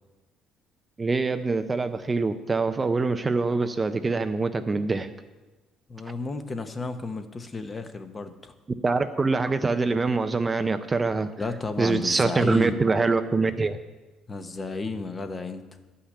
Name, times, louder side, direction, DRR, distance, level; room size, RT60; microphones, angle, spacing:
voice 1, 1.0-5.1 8.8-11.3 11.8-13.8, right 3 dB, 20° right, 9 dB, 0.5 m, -24 dB
voice 2, 5.9-8.5 11.4-12.8 14.3-15.6, left 3 dB, 25° left, 8 dB, 0.9 m, -32 dB
11.5 x 5.8 x 8.4 m, 1.2 s
cardioid pair, 115°, 0 cm